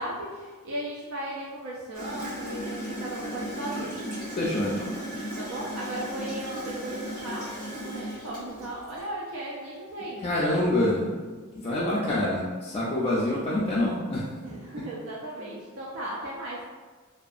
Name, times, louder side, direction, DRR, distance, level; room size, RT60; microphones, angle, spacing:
voice 1, 0.0-4.0 4.7-4.9 5.4-10.6 14.4-16.6, right 1 dB, 65° right, -5 dB, 0.4 m, -36 dB
Gurgling / Toilet flush, 1.9-9.0, equal, 45° right, 1.4 m, -36 dB
voice 2, 4.4-4.9 10.2-11.2 11.5-14.2 15.4-15.5, left 1 dB, 30° left, -7 dB, 0.3 m, -26 dB
2.6 x 2.3 x 2.4 m, 1.4 s
head